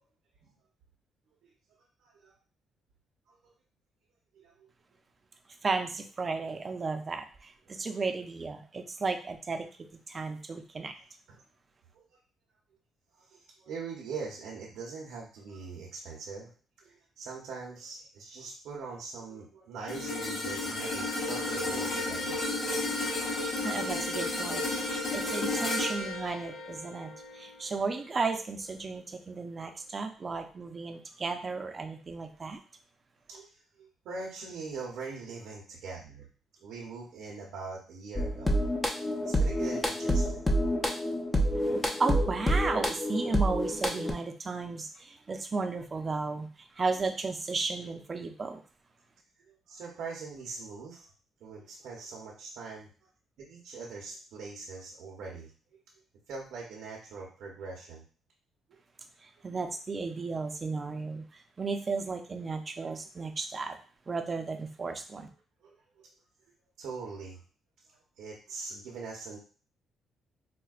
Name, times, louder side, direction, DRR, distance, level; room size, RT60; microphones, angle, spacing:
voice 1, 2.0-2.3 3.3-3.4 4.3-4.5 7.7-7.8 11.3-11.4 13.2-16.5 16.8-22.4 33.3-33.5 33.8-36.3 36.6-38.6 39.2-40.5 49.4-51.1 51.4-52.9 53.4-55.5 56.3-58.0 65.6-66.1 66.8-67.4 67.9-69.4, right 4 dB, 80° right, -2 dB, 0.8 m, -42 dB
voice 2, 5.6-10.9 23.6-32.6 42.0-48.6 59.2-63.8 64.1-65.3, right 4 dB, 35° right, 6 dB, 0.5 m, -34 dB
sound 1, 19.9-28.2 28.7-28.9, left 2 dB, 60° left, 1.4 m, -33 dB
sound 2, 38.2-44.1, equal, 20° left, 0.6 m, -28 dB
4.3 x 2.2 x 2.4 m, 0.38 s
cardioid pair, 90°, 0 cm